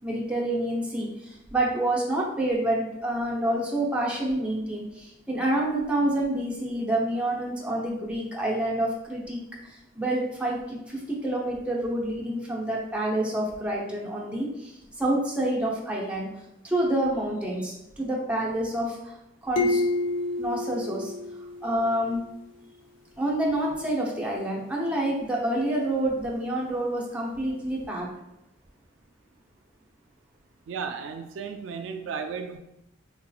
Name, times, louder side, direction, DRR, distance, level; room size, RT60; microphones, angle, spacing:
voice 1, 0.0-16.3 16.6-19.2 19.4-19.8 20.4-21.1 21.6-22.2 23.2-28.1, right 1 dB, 5° right, -3 dB, 0.7 m, -28 dB
sound 1, 19.6-22.1, left 2 dB, 80° left, 0.6 m, -28 dB
voice 2, 30.7-32.6, right 6 dB, 75° right, 6 dB, 0.3 m, -34 dB
3.9 x 2.9 x 2.3 m, 0.86 s
head